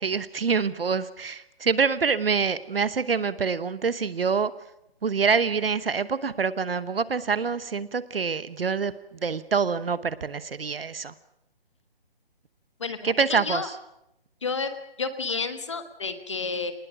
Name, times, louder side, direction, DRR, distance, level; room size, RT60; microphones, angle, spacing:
voice 1, 0.0-4.5 5.0-8.9 9.2-11.1 13.0-13.6, right 5 dB, 70° right, 15 dB, 1.0 m, -26 dB
voice 2, 12.8-13.7 14.4-14.7 15.0-16.7, left 4 dB, 30° left, 9 dB, 1.3 m, -30 dB
25.0 x 19.5 x 6.2 m, 0.83 s
hypercardioid pair, 180°, 30 cm